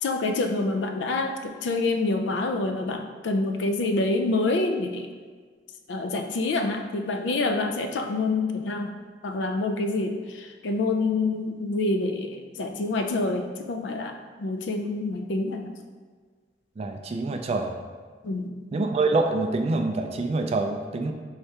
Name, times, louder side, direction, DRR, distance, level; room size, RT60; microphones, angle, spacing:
voice 1, 0.0-5.1 5.9-9.0 9.2-15.7 18.2-18.5, left 2 dB, 80° left, 5 dB, 0.4 m, -27 dB
voice 2, 16.8-17.7 18.7-21.1, right 3 dB, 35° right, 4 dB, 0.3 m, -26 dB
4.7 x 3.3 x 2.8 m, 1.5 s
head